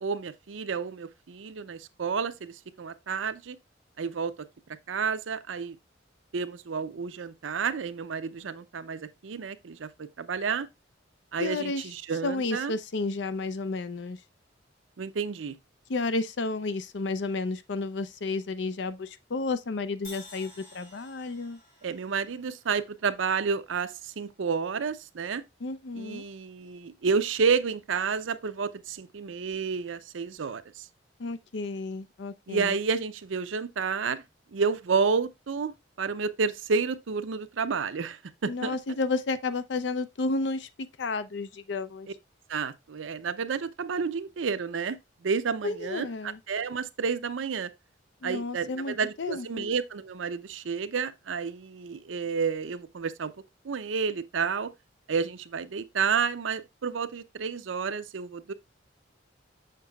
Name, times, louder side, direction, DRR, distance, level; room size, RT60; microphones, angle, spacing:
voice 1, 0.0-3.6 4.0-4.3 4.9-5.8 6.3-9.9 10.2-10.7 11.3-12.7 15.0-15.6 21.8-25.4 25.9-30.9 32.5-34.2 34.5-35.7 36.0-38.8 42.5-47.7 48.2-53.3 53.6-54.7 55.1-58.5, right 5 dB, 90° right, 0.5 m, -30 dB
voice 2, 11.4-11.8 12.2-14.2 15.9-21.6 25.6-26.2 31.2-32.8 38.5-40.7 41.0-42.1 45.6-46.4 48.2-49.7, left 3 dB, 65° left, 0.5 m, -32 dB
Crash cymbal, 20.0-24.1, left 2 dB, 45° left, 3.3 m, -52 dB
6.6 x 6.4 x 2.3 m
head